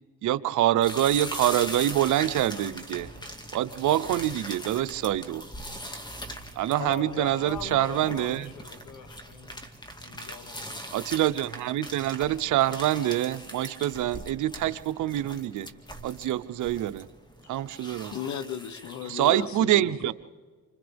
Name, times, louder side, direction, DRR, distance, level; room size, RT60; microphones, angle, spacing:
voice 1, 0.2-3.1 3.5-5.4 6.6-8.5 10.9-15.7 16.0-17.1 17.5-18.1 19.1-20.1, right 13 dB, 75° right, 12 dB, 0.8 m, -26 dB
sound 1, 0.8-19.5, equal, 15° left, 2.0 m, -41 dB
voice 2, 6.8-9.6 10.0-10.9, left 7 dB, 85° left, 8 dB, 1.5 m, -41 dB
voice 3, 18.1-20.1, left 8 dB, 70° left, 12 dB, 1.2 m, -35 dB
30.0 x 25.5 x 3.5 m, 1.5 s
cardioid pair, 90°, 30 cm